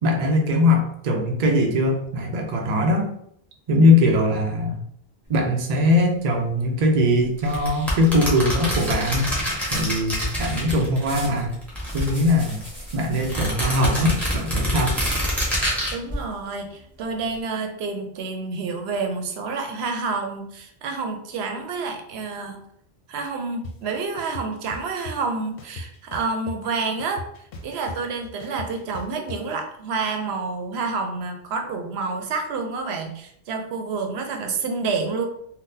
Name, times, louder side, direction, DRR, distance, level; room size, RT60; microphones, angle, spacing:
voice 1, 0.0-3.1 3.7-4.8 5.3-9.3 9.7-11.5 11.9-12.6 12.9-15.0, left 1 dB, 50° right, 2 dB, 0.6 m, -21 dB
sound 1, 5.2-17.4, equal, 25° right, 1.4 m, -42 dB
sound 2, 7.5-11.3 11.5-12.6 13.2-15.9, equal, ahead, 0.9 m, -26 dB
voice 2, 15.9-22.6 23.1-27.2 27.6-35.3, right 4 dB, 85° right, 4 dB, 0.8 m, -28 dB
sound 3, 23.6-23.7 24.2-25.2 25.6-26.7 27.0-29.4, left 2 dB, 70° left, 0.7 m, -37 dB
3.8 x 2.2 x 2.6 m, 0.70 s
omnidirectional pair, 1.0 m